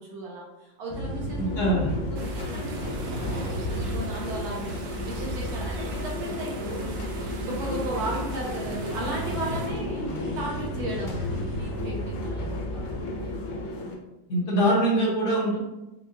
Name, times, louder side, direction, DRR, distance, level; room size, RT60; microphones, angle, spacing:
voice 1, 0.0-7.0 7.4-13.1, right 1 dB, 65° right, -3 dB, 1.1 m, -36 dB
sound 1, 0.9-13.6, equal, 25° left, 0.8 m, -34 dB
sound 2, 1.2-13.9, left 2 dB, 85° left, 0.6 m, -36 dB
voice 2, 1.4-1.9 14.3-15.6, right 1 dB, 60° left, -4 dB, 1.5 m, -23 dB
sound 3, 2.2-9.7, right 4 dB, 85° right, 1.4 m, -43 dB
5.4 x 2.3 x 2.5 m, 0.99 s
omnidirectional pair, 2.0 m